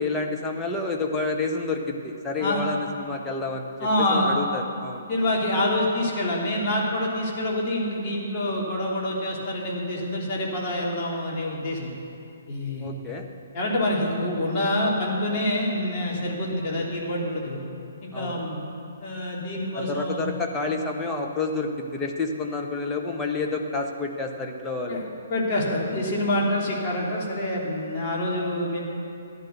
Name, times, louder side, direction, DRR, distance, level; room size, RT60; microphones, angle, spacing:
voice 1, 0.0-3.7 4.1-5.0 12.8-13.3 18.1-18.4 19.7-25.1, left 3 dB, 10° left, 0 dB, 1.3 m, -29 dB
voice 2, 3.8-4.3 5.1-11.9 12.5-12.9 13.5-17.6 18.0-18.6 19.0-20.3 24.9-25.0 25.3-28.8, left 1 dB, 30° left, -5 dB, 3.4 m, -26 dB
14.5 x 10.5 x 6.8 m, 2.5 s
figure-of-eight pair, 130°, 0 cm